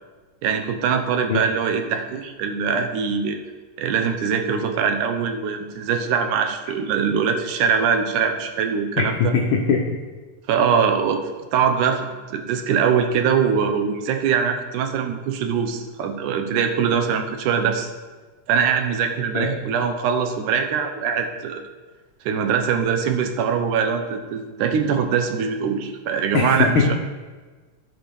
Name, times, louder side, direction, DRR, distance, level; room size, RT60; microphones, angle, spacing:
voice 1, 0.4-3.4 3.8-9.3 10.5-11.2 11.5-17.9 18.5-21.6 22.3-26.9, right 6 dB, 90° right, 6 dB, 2.4 m, -22 dB
voice 2, 9.3-9.9 19.3-19.5 26.3-26.9, left 5 dB, 80° left, 0 dB, 1.1 m, -20 dB
15.5 x 5.8 x 3.5 m, 1.3 s
omnidirectional pair, 3.4 m